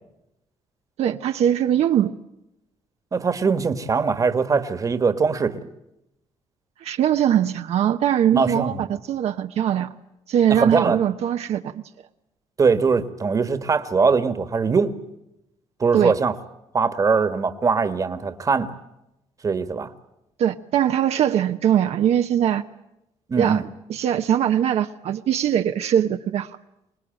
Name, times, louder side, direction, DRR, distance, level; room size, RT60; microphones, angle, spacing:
voice 1, 1.0-2.2 6.8-9.9 10.3-11.8 15.9-16.1 20.4-22.6 23.4-26.6, right 10 dB, 70° right, 6 dB, 1.0 m, -21 dB
voice 2, 3.1-5.6 8.3-8.8 10.5-11.0 12.6-15.0 15.8-16.4 16.7-18.7 19.4-19.9 23.3-23.6, right 5 dB, 30° right, 11 dB, 1.6 m, -21 dB
25.0 x 20.0 x 9.0 m, 0.87 s
cardioid pair, 120°, 11 cm